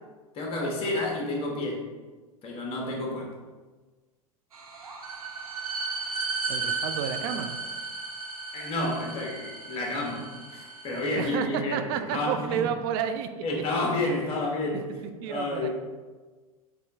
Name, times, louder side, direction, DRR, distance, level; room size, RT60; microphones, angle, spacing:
voice 1, 0.3-1.8 2.4-3.3 8.5-12.7 13.4-15.7, left 2 dB, 30° left, 0 dB, 1.0 m, -30 dB
sound 1, 4.5-11.3, right 4 dB, 75° right, 0.6 m, -35 dB
voice 2, 6.5-7.6 11.2-13.4 15.2-15.7, right 8 dB, 40° right, 8 dB, 0.4 m, -30 dB
4.2 x 2.3 x 4.0 m, 1.3 s
figure-of-eight pair, 90°, 19 cm